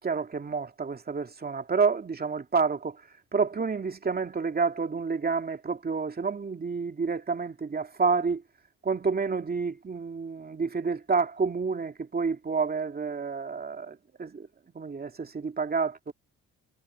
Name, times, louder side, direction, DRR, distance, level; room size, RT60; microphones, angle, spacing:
voice 1, 0.0-3.0 3.3-8.4 8.8-14.5 14.7-16.1, right 5 dB, 30° right, 2.5 m, -29 dB
cardioid pair, 90°, 30 cm